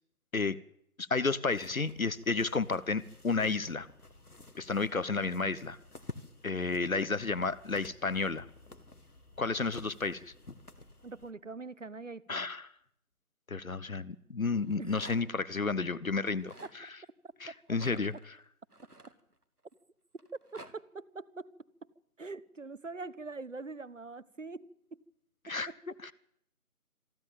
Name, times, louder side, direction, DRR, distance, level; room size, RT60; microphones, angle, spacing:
voice 1, 1.0-3.9 4.6-5.8 6.4-8.5 9.4-10.3 12.3-12.6 13.5-16.9 17.4-18.1 25.4-25.7 26.0-26.1, left 4 dB, 65° left, 18 dB, 1.0 m, -32 dB
sound 1, 1.5-11.3, left 2 dB, 85° left, 2.2 m, -52 dB
voice 2, 11.0-12.5 14.8-15.1 20.5-21.5 21.8-21.9 22.2-25.0 25.5-25.8, right 3 dB, 55° right, 20 dB, 1.2 m, -44 dB
Rattle, 14.6-15.4 16.2-16.8 17.7-19.7 20.2-20.7, right 2 dB, 90° right, 2.8 m, -52 dB
26.5 x 11.0 x 9.0 m, 0.74 s
figure-of-eight pair, 160°, 44 cm